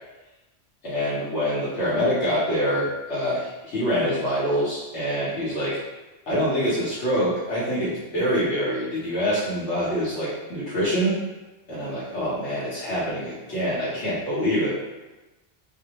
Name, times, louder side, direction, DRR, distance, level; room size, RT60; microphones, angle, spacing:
voice 1, 0.8-5.8 6.3-11.2 11.7-14.7, equal, 90° left, -9 dB, 1.1 m, -25 dB
2.6 x 2.1 x 2.8 m, 1.1 s
omnidirectional pair, 1.1 m